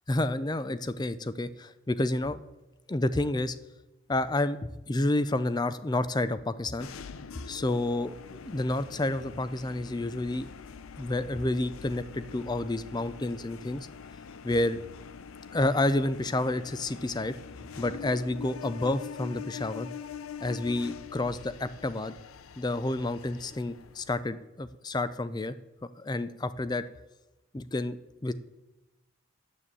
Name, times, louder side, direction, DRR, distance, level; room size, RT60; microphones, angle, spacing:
voice 1, 0.1-2.4 2.9-3.6 4.1-6.9 7.5-10.5 11.0-13.9 14.4-14.8 15.5-17.4 17.8-19.9 20.4-22.1 22.6-25.6 26.0-26.8 27.5-28.3, left 2 dB, 20° left, 14 dB, 0.4 m, -30 dB
sound 1, 6.8-24.2, left 7 dB, 75° left, 0.6 m, -44 dB
9.8 x 8.2 x 7.6 m, 1.0 s
head